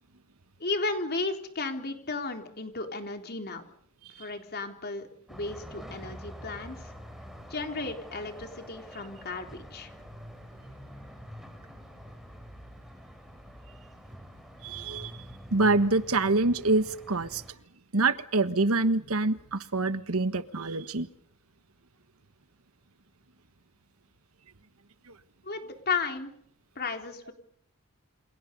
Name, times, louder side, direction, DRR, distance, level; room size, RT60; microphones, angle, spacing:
voice 1, 0.6-3.6 4.2-6.9 7.5-9.9 25.4-26.3 26.8-27.3, left 3 dB, 45° left, 5 dB, 3.8 m, -34 dB
sound 1, 5.3-17.5, equal, ahead, 4.3 m, -46 dB
voice 2, 14.6-15.1 15.5-17.4 17.9-21.1 25.1-25.2, right 3 dB, 70° right, 12 dB, 1.4 m, -26 dB
29.0 x 26.5 x 5.4 m, 0.67 s
head